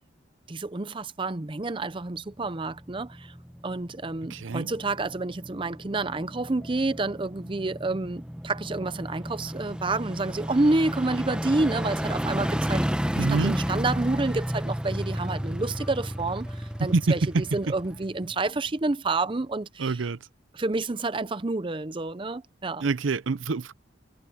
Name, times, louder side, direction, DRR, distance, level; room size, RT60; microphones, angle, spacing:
voice 1, 0.5-3.3 3.6-12.9 13.2-17.2 17.5-20.0 20.5-22.9, right 2 dB, 25° right, 0.6 m, -29 dB
sound 1, 2.1-18.7 19.0-19.1, equal, 5° right, 0.9 m, -33 dB
voice 2, 4.3-4.7 13.2-13.6 16.8-17.1 19.8-20.2 22.8-23.7, right 3 dB, 80° right, 0.6 m, -26 dB
sound 2, 4.6-18.6, left 1 dB, 15° left, 3.0 m, -55 dB
head